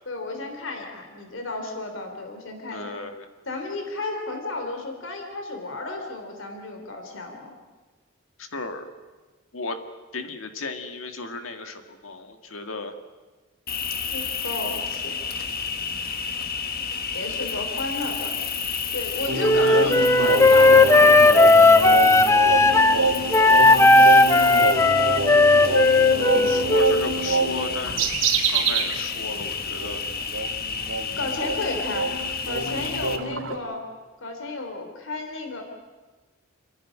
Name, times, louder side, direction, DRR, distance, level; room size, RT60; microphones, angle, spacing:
voice 1, 0.1-2.9 3.5-7.5 14.1-15.2 17.1-18.3 18.9-21.9 23.6-24.8 26.1-26.5 31.2-32.1 32.5-33.8 34.2-35.6, left 2 dB, 70° left, 4 dB, 3.5 m, -33 dB
voice 2, 2.7-3.3 8.4-8.9 9.5-9.8 10.1-12.9 19.6-19.9 26.4-28.1 28.5-30.0, left 3 dB, 90° left, 6 dB, 2.0 m, -35 dB
Cricket, 13.7-33.2, left 6 dB, 50° left, 1.3 m, -30 dB
sound 1, 19.3-29.0 29.2-29.4 29.8-33.5, right 3 dB, 80° right, 2.4 m, -27 dB
Wind instrument woodwind instrument, 19.4-23.0 23.3-27.1, left 2 dB, 15° left, 0.7 m, -16 dB
29.0 x 11.0 x 10.0 m, 1.3 s
head